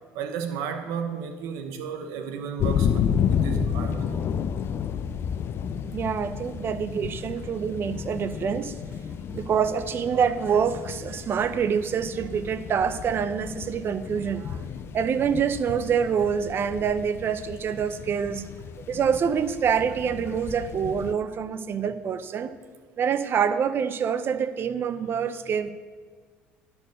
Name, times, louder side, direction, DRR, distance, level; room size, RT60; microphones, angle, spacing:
voice 1, 0.1-4.3, right 7 dB, 75° right, 7 dB, 0.9 m, -33 dB
sound 1, 2.6-21.1, left 7 dB, 50° left, 0.5 m, -31 dB
voice 2, 5.9-8.7 9.3-14.6 14.9-18.4 18.8-22.5 23.0-25.7, right 7 dB, 45° right, 13 dB, 0.6 m, -26 dB
10.5 x 4.4 x 6.4 m, 1.5 s
hypercardioid pair, 75°, 5 cm